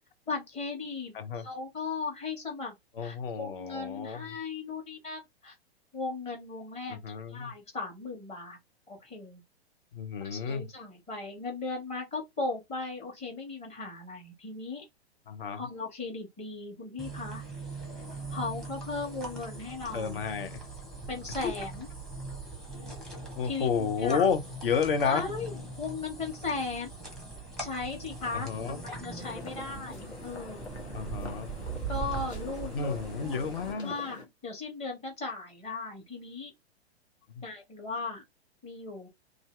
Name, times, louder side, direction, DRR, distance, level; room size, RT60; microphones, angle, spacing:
voice 1, 0.3-2.7 3.0-5.5 5.9-8.6 8.9-9.4 10.2-14.8 15.6-17.4 18.3-20.2 21.1-21.9 23.4-24.3 25.0-26.9 27.6-30.7 31.9-33.4 33.8-36.5 37.4-38.2 38.6-39.1, left 4 dB, 20° left, 1.2 m, -37 dB
voice 2, 3.0-4.2 6.9-7.5 9.9-10.7 15.3-15.6 19.9-20.6 21.4-21.5 23.3-25.2 28.3-28.8 30.9-31.5 32.7-33.9, left 6 dB, 55° left, 0.7 m, -31 dB
sound 1, 17.0-33.7, right 3 dB, ahead, 0.8 m, -41 dB
sound 2, 29.1-34.2, left 2 dB, 80° left, 1.1 m, -45 dB
2.6 x 2.4 x 3.2 m
figure-of-eight pair, 105°, 33 cm